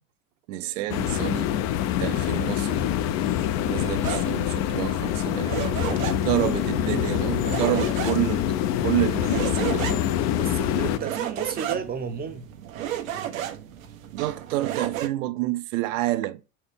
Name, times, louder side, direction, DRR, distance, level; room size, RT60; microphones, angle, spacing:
voice 1, 0.5-1.6 2.0-2.9 3.7-5.9 6.2-10.1 14.1-16.4, right 16 dB, 70° right, 0.8 m, -29 dB
sound 1, 0.9-11.0, left 11 dB, 45° left, 0.6 m, -25 dB
sound 2, 4.0-15.1, right 11 dB, 85° right, 1.2 m, -34 dB
voice 2, 10.4-12.5, right 6 dB, 25° right, 0.7 m, -32 dB
6.6 x 4.4 x 3.5 m
supercardioid pair, 120°, 39 cm